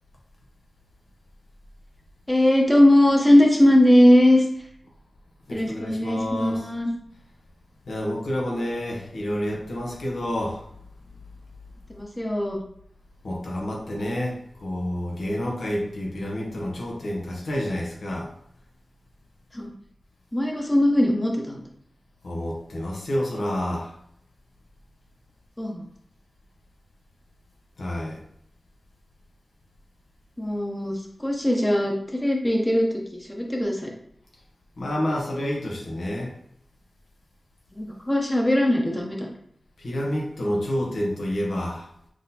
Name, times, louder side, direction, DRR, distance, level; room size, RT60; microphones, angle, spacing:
voice 1, 2.3-4.4 5.5-6.9 11.9-12.6 19.5-19.7 20.3-21.6 25.6-25.9 30.4-32.9 33.3-33.9 37.7-39.3, left 1 dB, 15° left, 0 dB, 0.8 m, -20 dB
voice 2, 5.5-6.6 7.9-10.6 13.2-18.3 22.2-23.9 27.8-28.2 34.8-36.3 39.8-41.9, left 1 dB, 90° left, -2 dB, 0.9 m, -29 dB
6.1 x 2.1 x 2.8 m, 0.70 s
wide cardioid pair, 75°, 0 cm